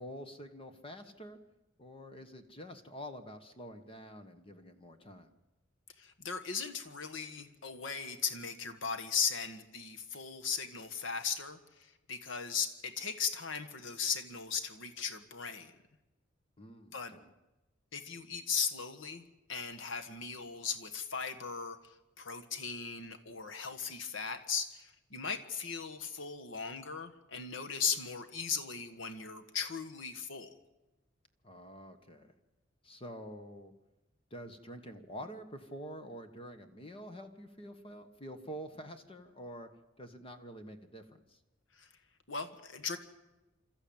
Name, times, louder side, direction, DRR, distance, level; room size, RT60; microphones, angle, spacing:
voice 1, 0.0-1.4 1.8-5.3 16.6-17.3 31.4-32.3 32.8-33.7 34.3-39.7 40.0-41.4, equal, 30° left, 7 dB, 1.4 m, -47 dB
voice 2, 6.0-15.7 16.9-17.1 17.9-19.2 19.5-30.5 41.7-41.9 42.3-43.0, left 6 dB, 85° left, 7 dB, 1.5 m, -37 dB
27.5 x 13.5 x 8.8 m, 1.0 s
head